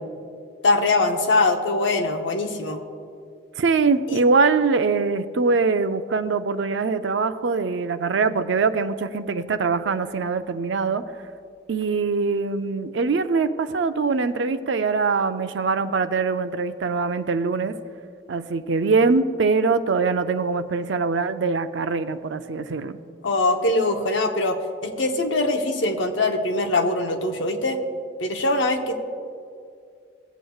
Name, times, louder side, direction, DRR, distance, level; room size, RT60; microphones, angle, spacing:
voice 1, 0.6-2.8 4.1-4.2 23.2-27.8 28.2-28.9, left 2 dB, 80° left, 4 dB, 0.9 m, -22 dB
voice 2, 3.6-11.0 11.7-17.7 18.3-23.0, right 4 dB, 75° right, 10 dB, 0.5 m, -23 dB
18.5 x 8.1 x 2.3 m, 2.3 s
head